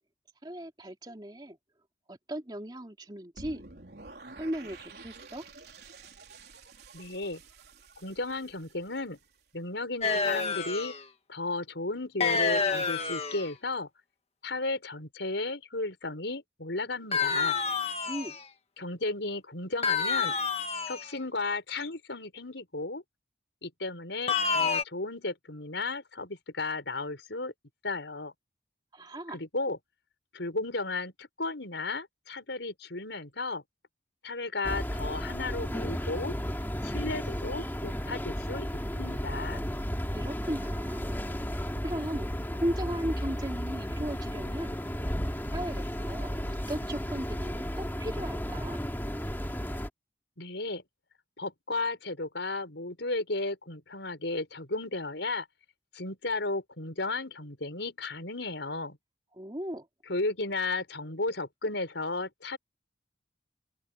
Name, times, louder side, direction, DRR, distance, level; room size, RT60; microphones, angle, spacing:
voice 1, 0.4-1.6 2.1-3.7 4.4-5.4 18.1-18.4 28.9-29.4 40.1-41.0 41.8-44.8 45.5-48.8 59.3-59.9, right 1 dB, 25° right, 2.7 m, -37 dB
sound 1, 3.4-9.4, right 3 dB, 60° right, 4.3 m, -50 dB
voice 2, 6.9-7.4 8.0-9.2 9.5-10.9 11.3-13.9 14.4-17.6 18.8-20.4 20.9-23.0 23.6-27.5 27.8-28.3 29.3-29.8 30.3-33.6 34.2-36.3 36.8-38.7 38.9-39.6 50.4-50.8 51.4-55.5 55.9-59.0 60.1-62.6, left 2 dB, 75° left, 4.8 m, -34 dB
sound 2, 10.0-11.0 12.2-13.5 17.1-18.4 19.8-21.1 24.3-24.8, left 5 dB, 35° left, 1.7 m, -28 dB
sound 3, 34.6-49.9, equal, 10° left, 2.5 m, -34 dB
open air
head